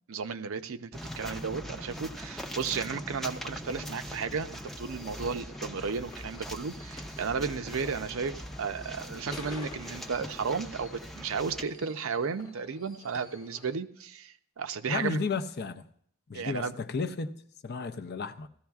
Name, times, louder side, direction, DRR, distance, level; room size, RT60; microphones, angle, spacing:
voice 1, 0.1-15.2 16.3-16.8, right 5 dB, 65° right, 0.5 m, -34 dB
sound 1, 0.9-11.6, equal, ahead, 0.5 m, -41 dB
sound 2, 3.4-13.8, left 2 dB, 15° left, 1.0 m, -51 dB
voice 2, 14.9-15.9 16.3-18.5, left 4 dB, 45° left, 0.5 m, -33 dB
17.0 x 14.0 x 2.4 m
head